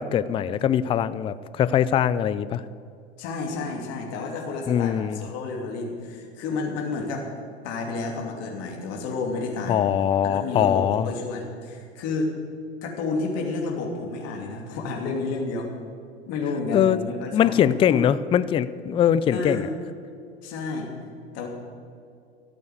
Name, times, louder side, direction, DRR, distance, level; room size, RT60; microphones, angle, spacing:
voice 1, 0.0-2.6 4.7-5.2 9.7-11.1 16.7-17.0 17.3-19.7, left 9 dB, 15° left, 16 dB, 0.4 m, -22 dB
voice 2, 3.2-7.3 7.6-9.8 10.2-12.3 12.8-15.7 16.3-17.5 17.9-18.1 19.3-19.7 20.4-20.9 21.3-21.5, left 3 dB, 50° left, 1 dB, 2.8 m, -30 dB
14.0 x 8.6 x 8.1 m, 2.4 s
hypercardioid pair, 100°, 33 cm